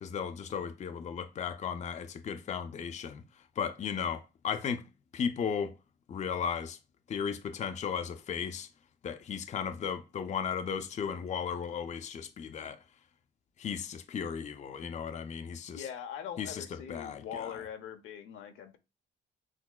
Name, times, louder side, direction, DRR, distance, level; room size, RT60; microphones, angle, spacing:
voice 1, 0.0-3.2 3.6-4.8 5.1-5.7 6.1-6.8 7.1-8.7 9.0-12.8 13.6-15.9 16.4-17.6, left 7 dB, 35° left, 0.4 m, -35 dB
voice 2, 15.7-18.8, left 8 dB, 85° left, 0.7 m, -42 dB
6.0 x 2.0 x 2.2 m
cardioid pair, 90°, 20 cm